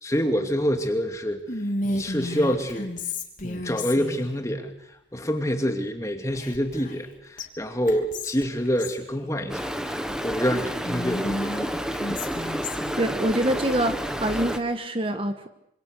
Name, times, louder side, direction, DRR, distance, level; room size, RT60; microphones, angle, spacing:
voice 1, 0.0-1.4 1.8-2.9 3.4-4.7 5.1-10.0 10.2-11.5, equal, 15° left, 5 dB, 2.5 m, -26 dB
Whispering, 1.5-4.3 6.3-7.1 7.4-7.5 7.9-9.0 10.8-13.0, left 2 dB, 45° left, 3.3 m, -32 dB
Stream, 9.5-14.6, equal, 5° right, 1.6 m, -30 dB
voice 2, 13.0-15.5, right 1 dB, 30° right, 7 dB, 1.5 m, -25 dB
26.5 x 26.5 x 6.8 m, 0.78 s
head